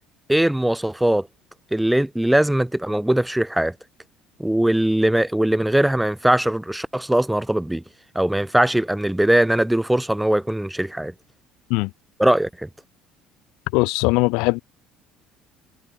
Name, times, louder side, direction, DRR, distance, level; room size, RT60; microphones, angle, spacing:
voice 1, 0.3-1.3 1.7-3.7 4.4-7.8 8.1-11.1 12.2-12.7, right 1 dB, 5° right, 1.1 m, -20 dB
voice 2, 13.7-14.6, left 27 dB, 80° left, 0.4 m, -20 dB
supercardioid pair, 85°, 0 cm